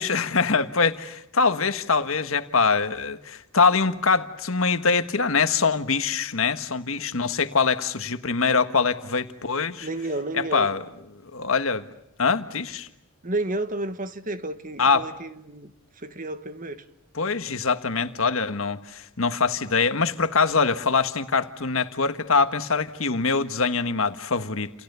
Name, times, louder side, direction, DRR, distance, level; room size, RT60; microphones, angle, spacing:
voice 1, 0.0-9.9 10.3-10.8 11.1-11.8 12.2-12.9 14.8-15.1 17.1-24.7, left 4 dB, 75° left, 1.5 m, -23 dB
voice 2, 9.8-10.7 13.2-15.7 16.0-16.8, right 2 dB, 40° right, 1.4 m, -31 dB
30.0 x 28.5 x 6.9 m
head